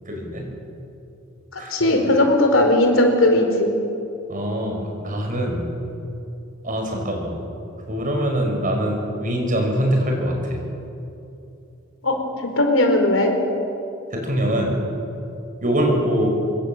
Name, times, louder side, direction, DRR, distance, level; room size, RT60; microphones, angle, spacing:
voice 1, 0.1-0.5 1.6-2.2 4.3-5.7 6.6-7.4 7.9-10.6 14.1-14.9 15.6-16.3, equal, 45° right, 2 dB, 5.9 m, -23 dB
voice 2, 1.5-3.7 12.0-13.3, left 1 dB, 85° left, 4 dB, 4.3 m, -18 dB
25.0 x 22.5 x 7.9 m, 2.8 s
head